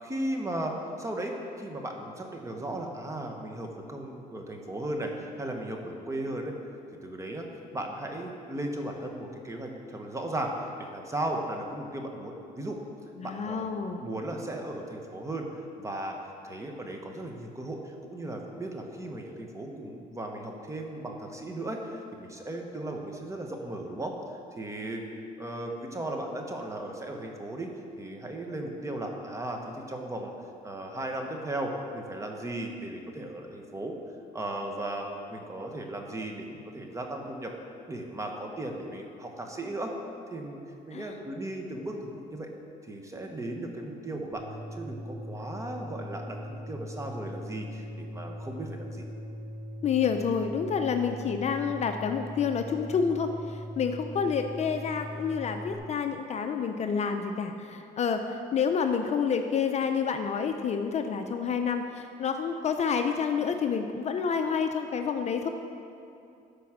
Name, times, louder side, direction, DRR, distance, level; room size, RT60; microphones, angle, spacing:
voice 1, 0.0-5.1 5.4-6.5 7.0-7.5 7.7-12.8 13.2-13.7 14.0-16.2 16.4-25.0 25.4-27.7 28.0-30.3 30.6-33.9 34.3-37.5 37.9-39.9 40.3-40.6 40.9-42.5 42.8-44.5 44.7-49.0, right 1 dB, 15° right, 2 dB, 1.3 m, -36 dB
voice 2, 13.2-14.1 40.9-41.1 49.8-65.5, left 6 dB, 40° left, 6 dB, 0.6 m, -29 dB
sound 1, 44.3-55.7, equal, 45° right, 1.8 m, -40 dB
13.5 x 5.1 x 6.1 m, 2.6 s
cardioid pair, 110°, 17 cm